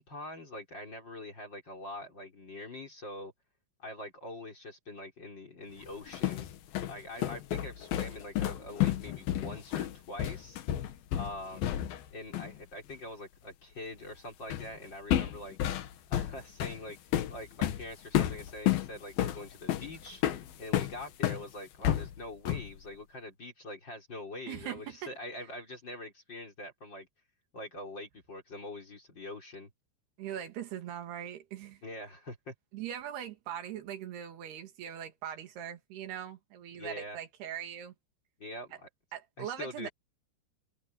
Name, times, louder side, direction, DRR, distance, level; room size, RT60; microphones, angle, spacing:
voice 1, 0.0-3.3 3.8-6.5 6.9-10.6 11.1-11.6 12.1-15.6 16.1-17.0 17.3-20.2 20.6-27.1 27.5-29.7 31.8-32.5 36.7-37.2 38.4-38.9 39.4-39.9, left 1 dB, 25° left, 4.3 m, -44 dB
sound 1, 5.9-12.1 12.3-12.6 14.5-14.8 15.1-21.4 21.8-22.8, left 12 dB, 65° left, 2.9 m, -31 dB
voice 2, 24.5-25.1 30.2-31.8 32.7-37.9 39.1-39.9, right 10 dB, 70° right, 4.0 m, -41 dB
omnidirectional pair, 5.0 m